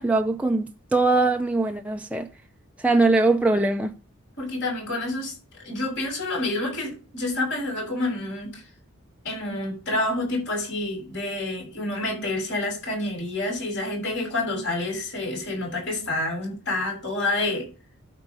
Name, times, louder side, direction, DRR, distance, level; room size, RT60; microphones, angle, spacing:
voice 1, 0.0-2.3 2.8-3.9, right 2 dB, 5° right, 0.6 m, -21 dB
voice 2, 4.4-5.3 5.6-8.6 9.2-17.7, left 2 dB, 60° left, 7.1 m, -28 dB
12.5 x 4.6 x 6.8 m
head